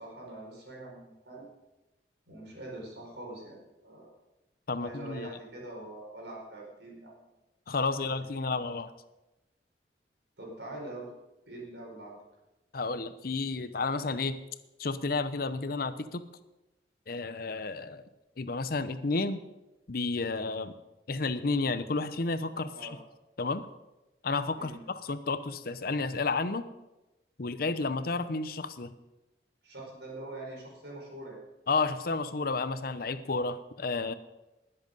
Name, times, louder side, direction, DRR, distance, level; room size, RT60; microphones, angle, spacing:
voice 1, 0.0-1.5 2.3-4.1 4.7-7.3 8.0-8.1 10.4-11.1 11.5-12.2 22.7-23.0 24.5-24.8 29.6-31.4, right 1 dB, 75° right, -1 dB, 5.0 m, -44 dB
voice 2, 4.7-5.3 7.7-8.9 12.7-14.4 14.8-16.2 17.1-18.0 18.4-19.4 19.9-20.7 21.1-22.9 23.4-23.7 24.2-26.7 27.4-28.9 31.7-34.1, left 3 dB, 55° left, 12 dB, 0.8 m, -31 dB
20.0 x 7.9 x 5.4 m, 1.0 s
head